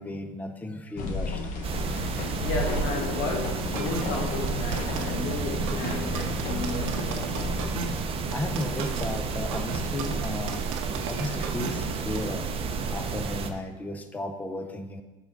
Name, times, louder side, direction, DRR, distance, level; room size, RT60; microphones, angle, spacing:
voice 1, 0.0-1.5 8.3-10.6 11.1-12.5 12.9-15.0, left 2 dB, 10° left, 0.5 m, -34 dB
sound 1, 1.0-8.0, left 3 dB, 55° left, 1.0 m, -33 dB
sound 2, 1.6-13.5, right 5 dB, 35° right, 0.6 m, -31 dB
voice 2, 2.4-7.3, left 3 dB, 80° left, 1.0 m, -33 dB
sound 3, 3.8-12.3, right 6 dB, 90° right, 0.7 m, -36 dB
5.9 x 3.6 x 5.2 m
supercardioid pair, 110°, 17 cm